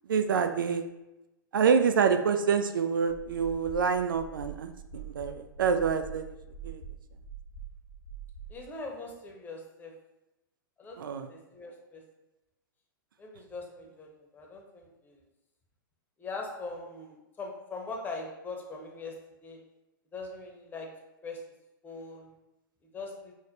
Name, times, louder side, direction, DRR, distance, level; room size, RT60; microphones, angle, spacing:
voice 1, 0.1-0.8 1.5-6.4 6.6-6.8 11.0-11.3, right 6 dB, 70° right, 8 dB, 0.4 m, -27 dB
sound 1, 3.1-8.6, right 6 dB, 80° left, 0.6 m, -45 dB
voice 2, 8.5-9.9 10.8-11.0 11.3-12.0 13.2-15.2 16.2-19.1 19.4-19.6 20.1-20.9 21.2-21.4 21.8-22.3 22.9-23.3, left 3 dB, 15° left, 0 dB, 0.7 m, -41 dB
6.0 x 2.1 x 2.6 m, 0.95 s
figure-of-eight pair, 105°, 12 cm